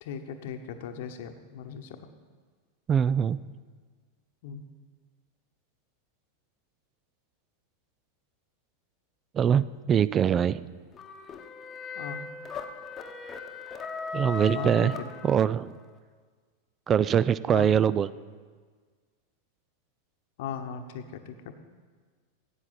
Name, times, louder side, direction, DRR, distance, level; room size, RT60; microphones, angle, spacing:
voice 1, 0.0-2.1 4.4-4.6 12.0-12.3 14.5-14.9 17.5-17.7 20.4-21.5, left 6 dB, 50° left, 7 dB, 1.0 m, -38 dB
voice 2, 2.9-3.4 9.3-10.6 14.1-15.0 15.2-15.8 16.9-18.1, right 8 dB, 25° right, 19 dB, 0.3 m, -23 dB
sound 1, 10.9-15.8, left 5 dB, 20° left, 1.0 m, -38 dB
15.5 x 8.8 x 5.8 m, 1.6 s
figure-of-eight pair, 90°, 0 cm